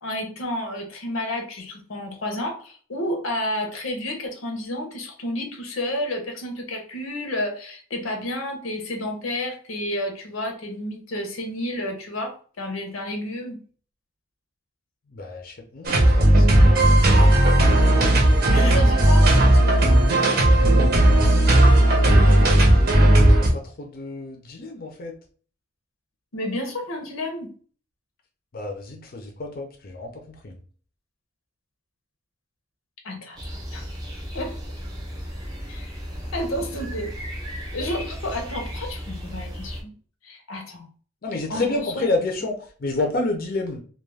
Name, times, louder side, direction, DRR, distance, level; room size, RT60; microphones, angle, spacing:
voice 1, 0.0-13.6 18.5-19.3 26.3-27.5 33.0-33.4 33.7-33.9 34.3-34.6 35.7-36.0 36.3-37.1 37.7-39.9 40.2-40.9 41.5-42.1, left 1 dB, 90° left, 5 dB, 0.7 m, -30 dB
voice 2, 15.1-17.4 20.2-21.8 23.4-25.2 28.5-30.6 41.2-43.8, left 2 dB, 45° left, 2 dB, 0.5 m, -30 dB
sound 1, 15.8-23.5, right 1 dB, 50° right, 0.7 m, -15 dB
sound 2, 33.3-39.8, equal, 20° right, 0.7 m, -35 dB
2.3 x 2.2 x 3.2 m, 0.42 s
head